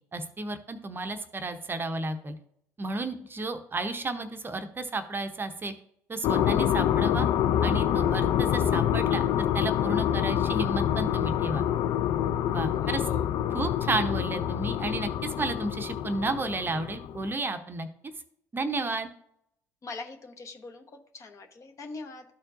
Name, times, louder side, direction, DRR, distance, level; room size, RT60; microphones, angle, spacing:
voice 1, 0.1-2.3 2.8-5.7 6.1-7.3 7.6-9.2 9.5-11.6 12.4-13.0 13.5-17.9 18.5-19.1, right 2 dB, 25° right, 7 dB, 0.7 m, -32 dB
sound 1, 6.2-17.3, left 10 dB, 50° left, 0.4 m, -26 dB
voice 2, 12.8-13.3 19.8-20.8 21.1-22.2, left 3 dB, 35° left, 4 dB, 1.0 m, -42 dB
12.5 x 4.4 x 2.5 m, 0.72 s
figure-of-eight pair, 55°, 9 cm